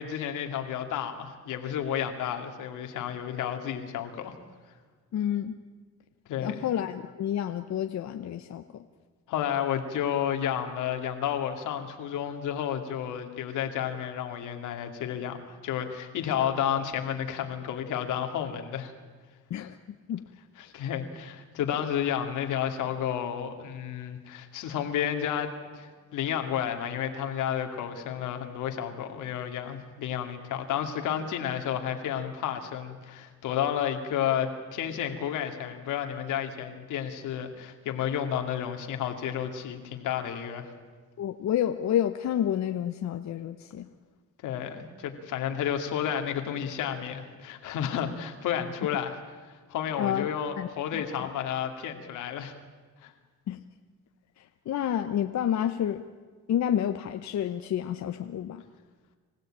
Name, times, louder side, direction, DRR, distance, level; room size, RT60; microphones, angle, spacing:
voice 1, 0.0-4.3 6.3-6.6 9.3-15.4 15.6-18.9 20.6-40.7 44.4-49.2 49.7-52.5 53.0-53.1, left 9 dB, 90° left, 5 dB, 2.5 m, -31 dB
voice 2, 5.1-5.5 6.4-8.8 19.5-19.8 20.1-20.2 41.2-43.9 50.0-50.3 50.6-51.3 53.5-53.6 54.4-56.0 56.5-58.6, left 10 dB, 65° left, 7 dB, 1.0 m, -29 dB
25.5 x 16.0 x 8.9 m, 1.5 s
cardioid pair, 90°, 30 cm